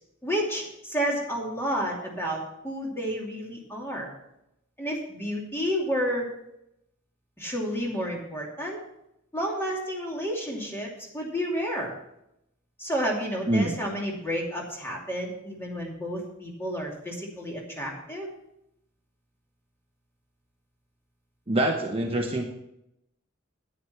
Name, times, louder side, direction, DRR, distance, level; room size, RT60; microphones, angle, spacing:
voice 1, 0.2-4.1 4.8-6.3 7.4-8.8 9.3-11.9 12.8-18.3, equal, 10° left, -2 dB, 2.7 m, -30 dB
voice 2, 21.5-22.4, right 1 dB, 30° right, 2 dB, 0.9 m, -25 dB
9.9 x 9.7 x 5.8 m, 0.82 s
head